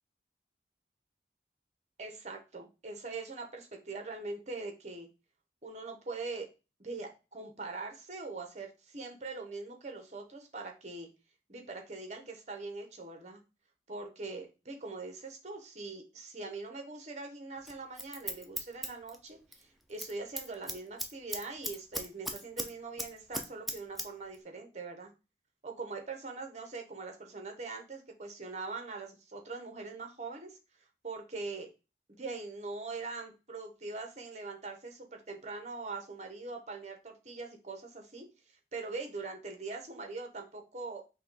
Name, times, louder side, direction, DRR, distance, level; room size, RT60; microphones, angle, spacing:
voice 1, 2.0-5.1 5.6-6.5 6.8-11.1 11.5-13.4 13.9-25.1 25.6-30.6 31.0-31.7 32.2-38.3 38.7-41.0, right 3 dB, 40° right, 4 dB, 0.9 m, -42 dB
Scissors, 17.7-19.6 19.9-20.1 20.4-22.7 23.0-24.1 24.3-24.4, equal, ahead, 0.4 m, -37 dB
5.5 x 2.3 x 3.9 m, 0.29 s
head